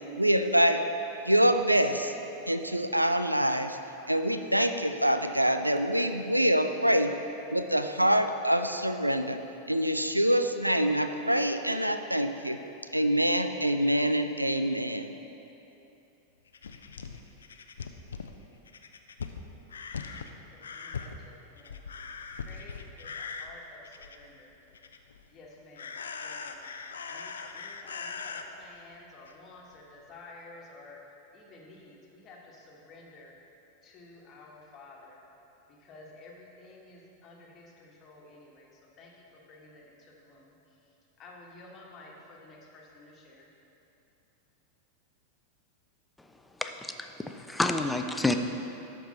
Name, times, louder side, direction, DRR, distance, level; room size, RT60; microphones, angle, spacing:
voice 1, 0.2-0.8 1.2-2.2 2.5-3.8 4.1-7.1 7.5-9.4 9.7-12.6 12.9-15.1, equal, 90° right, 8 dB, 0.4 m, -25 dB
sound 1, 16.5-24.4 24.7-25.3 25.8-28.4 29.3-29.4 29.7-29.8, left 5 dB, 70° left, 0.4 m, -40 dB
voice 2, 20.7-21.1 21.5-21.8 22.4-24.5 25.3-25.9 26.2-26.8 27.1-31.0 31.3-33.3 33.8-35.2 35.8-38.7 39.0-40.5 41.2-43.5, left 2 dB, 30° left, -2 dB, 1.4 m, -52 dB
voice 3, 46.6-47.1 47.3-48.3, left 2 dB, 5° left, 6 dB, 0.5 m, -28 dB
12.5 x 4.7 x 4.1 m, 2.9 s
figure-of-eight pair, 90°, 0 cm